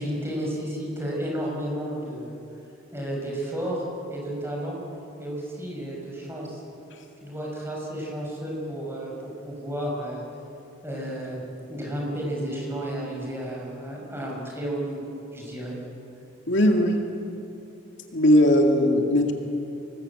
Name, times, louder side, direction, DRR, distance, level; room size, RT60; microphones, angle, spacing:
voice 1, 0.0-2.4 2.9-4.8 5.2-6.6 7.2-10.2 10.8-11.4 11.7-15.8, right 1 dB, 10° right, -3 dB, 6.1 m, -32 dB
voice 2, 16.5-17.1 18.1-19.3, left 1 dB, 65° left, 2 dB, 2.3 m, -19 dB
26.0 x 20.5 x 8.4 m, 2.9 s
head